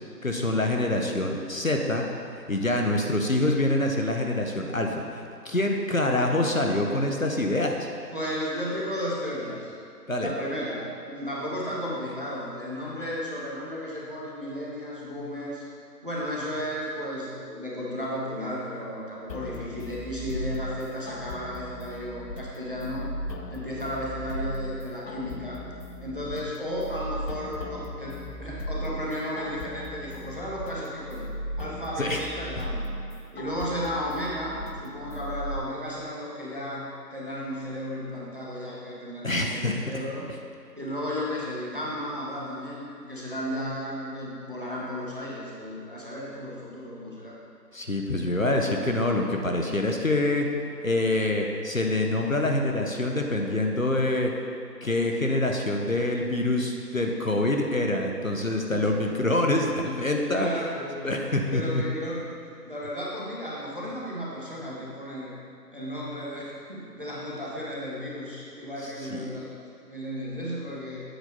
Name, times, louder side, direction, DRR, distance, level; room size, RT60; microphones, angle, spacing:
voice 1, 0.2-2.1 2.5-7.9 10.1-10.3 32.0-32.2 39.2-39.8 47.7-50.5 50.8-54.3 54.8-60.5 61.0-61.8 68.8-69.3, left 1 dB, 55° left, 2 dB, 0.7 m, -26 dB
voice 2, 8.1-9.7 10.2-15.6 16.0-23.1 23.5-25.6 26.0-31.3 31.6-32.9 33.3-40.3 40.7-47.4 58.7-59.2 60.2-62.3 62.6-65.4 65.7-69.5 69.9-71.0, equal, 30° right, -5 dB, 1.0 m, -34 dB
sound 1, 19.3-35.6, equal, 85° left, 0.8 m, -37 dB
7.9 x 4.2 x 5.2 m, 2.4 s
figure-of-eight pair, 175°, 50 cm